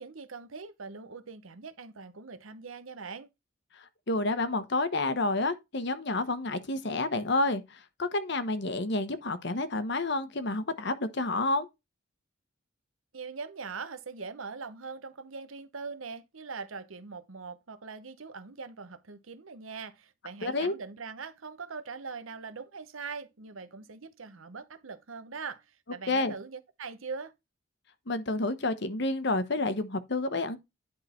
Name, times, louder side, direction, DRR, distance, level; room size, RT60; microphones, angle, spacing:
voice 1, 0.0-3.3 13.1-27.3, right 4 dB, 85° right, 1.0 m, -42 dB
voice 2, 3.8-11.7 20.4-20.7 26.1-26.3 28.1-30.6, left 2 dB, 60° left, 1.1 m, -29 dB
10.5 x 3.8 x 4.3 m
head